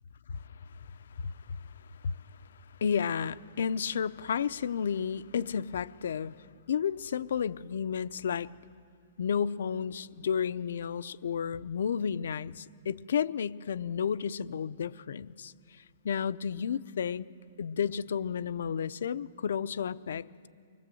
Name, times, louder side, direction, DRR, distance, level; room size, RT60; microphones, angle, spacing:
voice 1, 1.2-1.6 2.0-2.1 2.8-6.4 6.7-8.5 9.2-15.5 16.0-17.3 17.6-20.3, left 7 dB, 70° left, 0.6 m, -32 dB
25.0 x 21.0 x 7.7 m
hypercardioid pair, 175°, 0 cm